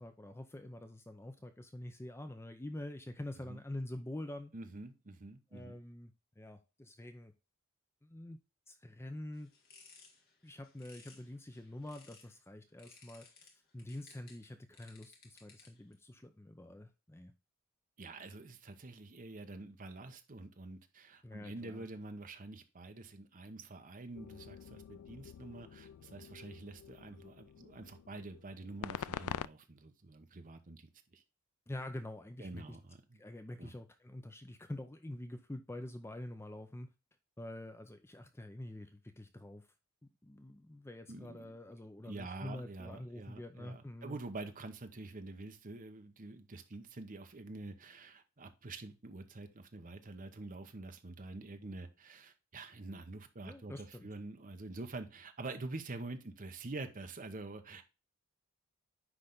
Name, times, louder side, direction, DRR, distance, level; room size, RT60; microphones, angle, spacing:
voice 1, 0.0-4.5 5.5-7.3 8.0-8.4 8.7-9.5 10.4-13.3 13.7-17.3 21.2-21.8 31.7-32.8 33.1-36.9 37.4-39.7 40.2-44.2 53.4-54.1, left 1 dB, 10° left, 0.5 m, -46 dB
voice 2, 4.5-5.8 18.0-31.2 32.4-33.2 33.6-33.7 41.1-41.5 42.0-57.8, right 2 dB, 35° right, 0.9 m, -47 dB
sound 1, 9.3-12.4 12.8-15.9, left 4 dB, 45° left, 1.7 m, -61 dB
sound 2, 24.2-29.5, left 9 dB, 70° left, 0.3 m, -46 dB
9.7 x 3.3 x 3.9 m
head